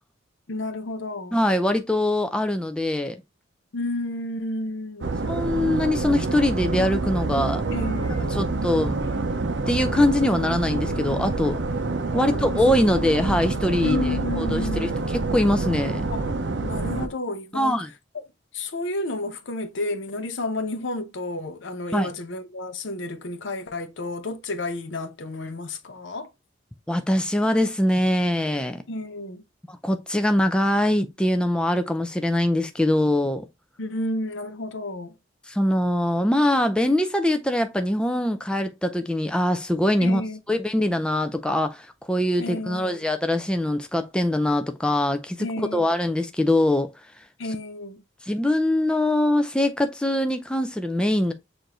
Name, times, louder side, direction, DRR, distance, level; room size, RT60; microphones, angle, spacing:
voice 1, 0.5-1.4 3.7-5.1 7.7-8.4 12.1-12.8 13.8-15.1 16.1-16.3 16.6-17.8 18.1-18.2 18.5-26.3 28.9-29.4 33.8-35.2 40.0-40.4 42.4-43.0 45.4-45.9 47.4-48.0, left 2 dB, 65° left, 0.7 m, -31 dB
voice 2, 1.3-3.2 5.3-7.6 8.3-9.0 9.7-11.6 12.1-14.0 14.4-16.0 17.5-17.9 21.9-22.1 26.9-28.8 29.7-33.5 35.5-40.2 40.5-45.5 45.7-46.9 48.2-51.3, left 1 dB, 5° left, 0.3 m, -23 dB
sound 1, 5.0-17.1, right 3 dB, 60° right, 0.6 m, -27 dB
6.6 x 2.6 x 2.9 m
head